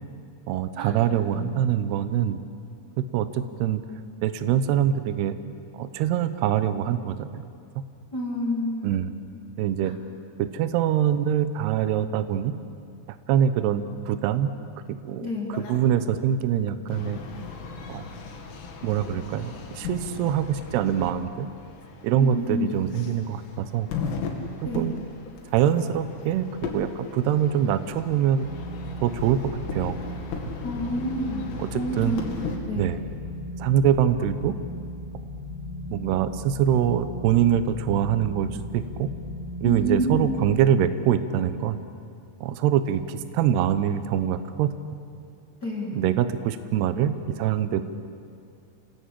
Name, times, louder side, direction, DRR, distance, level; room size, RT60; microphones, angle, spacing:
voice 1, 0.5-2.4 3.1-3.8 4.2-5.4 5.8-7.5 7.8-7.9 8.8-9.1 9.6-9.9 10.4-12.5 13.3-14.5 15.1-17.2 17.9-18.0 18.8-21.5 22.0-23.9 24.7-25.0 25.5-26.5 26.7-28.5 29.0-29.4 29.7-30.0 31.6-32.2 32.8-33.0 33.6-34.6 35.9-39.1 39.6-41.8 42.4-44.7 45.9-47.8, right 10 dB, 75° right, 11 dB, 2.4 m, -24 dB
voice 2, 8.1-9.0 15.2-15.5 22.2-22.8 24.6-24.9 30.6-31.5 31.7-32.9 39.6-40.4 45.6-46.0, equal, 45° left, -2 dB, 1.2 m, -29 dB
sound 1, 15.5-15.9 16.9-32.6, left 5 dB, 85° left, 4.9 m, -37 dB
sound 2, 28.4-40.5, left 1 dB, 5° right, 6.5 m, -37 dB
27.5 x 18.5 x 8.5 m, 2.4 s
omnidirectional pair, 5.9 m